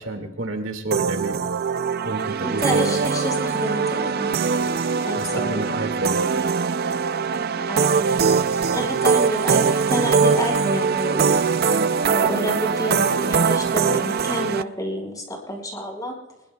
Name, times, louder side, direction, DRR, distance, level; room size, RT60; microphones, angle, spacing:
voice 1, 0.0-1.4 2.0-2.8 5.2-6.2, right 2 dB, 70° right, 4 dB, 2.1 m, -29 dB
sound 1, 0.9-14.6, right 5 dB, 50° right, 0.5 m, -22 dB
voice 2, 2.4-4.3 5.0-5.6 7.7-8.3 8.7-11.4 12.0-16.2, equal, 20° left, 0 dB, 5.2 m, -28 dB
24.0 x 22.5 x 2.3 m, 0.94 s
head